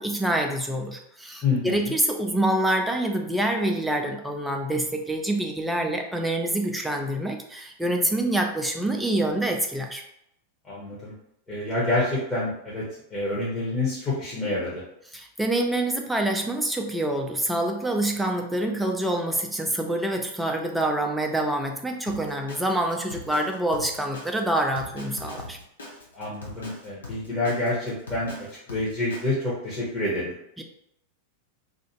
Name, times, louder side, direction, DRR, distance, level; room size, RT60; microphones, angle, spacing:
voice 1, 0.0-10.0 15.1-25.6 30.6-30.7, right 1 dB, 5° right, 2 dB, 0.4 m, -26 dB
voice 2, 1.4-1.9 10.6-11.1 11.5-12.8 13.1-14.8 26.1-30.3, left 2 dB, 15° left, -8 dB, 0.9 m, -28 dB
Drum kit, 22.1-29.3, left 2 dB, 70° left, 0.7 m, -41 dB
2.5 x 2.4 x 3.0 m, 0.75 s
figure-of-eight pair, 90°, 0 cm